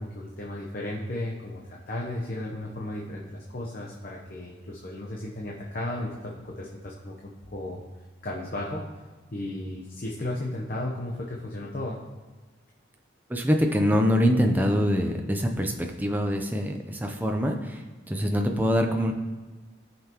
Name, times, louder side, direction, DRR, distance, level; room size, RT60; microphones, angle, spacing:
voice 1, 0.0-7.8 8.2-8.8 9.3-12.0, left 1 dB, 50° left, -3 dB, 0.9 m, -34 dB
voice 2, 13.3-19.1, equal, 10° right, 3 dB, 0.6 m, -24 dB
17.0 x 5.7 x 3.0 m, 1.3 s
head